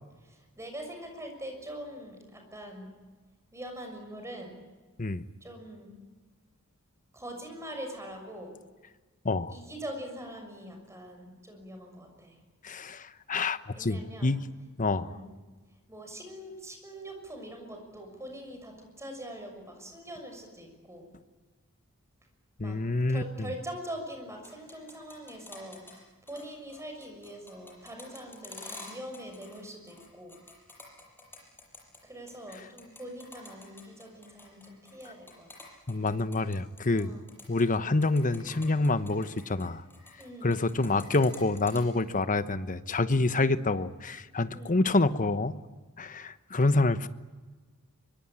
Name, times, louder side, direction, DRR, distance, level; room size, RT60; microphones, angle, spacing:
voice 1, 0.2-2.9 3.5-4.6 5.4-6.0 7.1-8.5 9.5-12.3 13.7-14.3 15.0-15.3 15.9-21.0 22.6-22.8 23.1-25.8 26.3-30.3 32.0-35.5 36.9-37.3 40.2-40.7 43.3-43.6 44.5-44.8, right 1 dB, 15° right, 4 dB, 6.5 m, -43 dB
voice 2, 12.6-14.4 14.8-15.2 22.6-23.5 35.9-37.1 37.5-39.8 40.4-45.6 46.0-47.1, left 2 dB, 35° left, 12 dB, 1.0 m, -27 dB
sound 1, 24.4-26.0 26.3-26.4 26.7-29.6 29.9-32.0 32.3-37.0 37.3-37.6 38.0-40.3 40.5-41.8, left 3 dB, 10° left, 6.8 m, -48 dB
24.5 x 24.0 x 8.9 m, 1.3 s
head